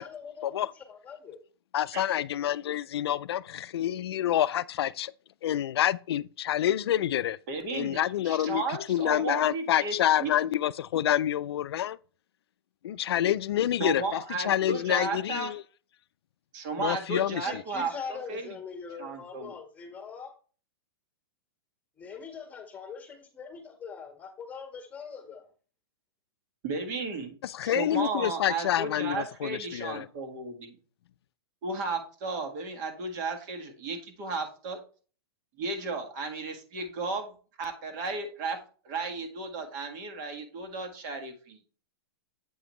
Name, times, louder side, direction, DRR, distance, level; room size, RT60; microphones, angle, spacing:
voice 1, 0.0-0.5 0.7-1.4 17.4-20.3 22.0-25.5, left 5 dB, 10° left, 1.5 m, -42 dB
voice 2, 1.7-5.1 5.4-7.4 7.7-12.0 12.8-15.6 16.8-17.6 27.4-30.1, left 11 dB, 75° left, 0.4 m, -28 dB
voice 3, 7.5-10.3 13.8-15.5 16.5-18.6 19.0-19.6 26.6-27.4 27.6-30.8 31.6-34.8 35.6-38.6 38.8-41.6, right 3 dB, 50° right, 1.7 m, -34 dB
7.8 x 5.0 x 3.1 m
hypercardioid pair, 135°, 13 cm